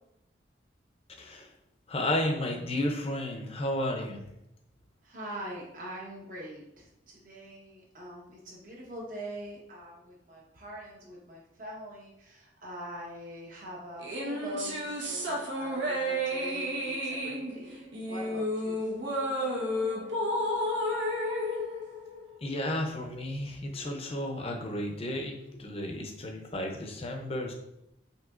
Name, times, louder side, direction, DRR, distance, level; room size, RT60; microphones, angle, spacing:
voice 1, 1.2-1.5 1.9-4.2 22.4-27.5, left 1 dB, 30° left, 3 dB, 0.5 m, -32 dB
voice 2, 5.0-17.7 18.0-18.8, equal, 45° right, -3 dB, 1.0 m, -43 dB
sound 1, 14.0-22.6, equal, 75° right, 1.0 m, -32 dB
6.0 x 2.9 x 2.5 m, 0.85 s
head